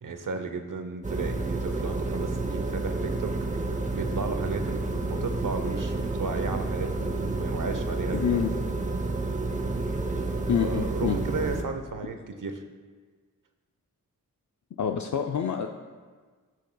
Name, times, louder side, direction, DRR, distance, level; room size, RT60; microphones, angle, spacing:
voice 1, 0.0-3.3 3.6-8.4 10.6-12.6, right 4 dB, 65° right, 7 dB, 0.8 m, -34 dB
sound 1, 1.0-11.6, right 2 dB, 20° right, 0.8 m, -30 dB
voice 2, 8.1-8.6 10.5-11.2 14.8-15.7, left 8 dB, 55° left, 4 dB, 0.5 m, -27 dB
14.5 x 6.4 x 2.3 m, 1.5 s
wide cardioid pair, 90°, 35 cm